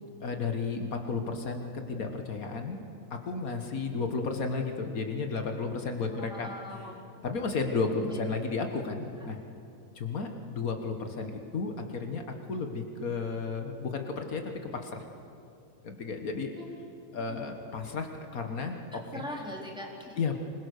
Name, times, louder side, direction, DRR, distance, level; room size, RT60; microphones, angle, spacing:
voice 1, 0.0-2.8 3.1-6.5 7.2-9.4 10.0-15.1 15.8-16.6 17.1-19.2 20.2-20.4, left 4 dB, 70° left, 4 dB, 1.9 m, -33 dB
voice 2, 6.3-7.0 8.1-8.2 16.6-16.7 17.3-17.4 19.1-20.1, equal, 5° right, -3 dB, 4.0 m, -40 dB
26.0 x 21.5 x 6.6 m, 2.7 s
omnidirectional pair, 1.5 m